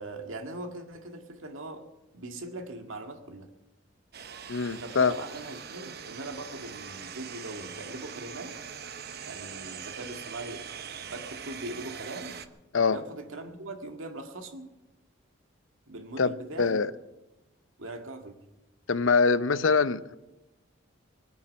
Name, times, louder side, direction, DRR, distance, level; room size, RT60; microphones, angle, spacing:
voice 1, 0.0-1.9 2.1-3.5 4.8-8.6 9.2-10.7 11.0-12.4 12.9-14.7 15.9-16.8 17.8-18.4, right 2 dB, 85° right, 4 dB, 1.9 m, -40 dB
sound 1, 4.1-12.5, right 7 dB, 50° right, 0.9 m, -42 dB
voice 2, 4.5-5.1 12.7-13.0 16.2-16.3 16.6-16.9 18.9-20.2, left 5 dB, 80° left, 15 dB, 0.6 m, -24 dB
20.5 x 8.7 x 7.5 m, 1.0 s
head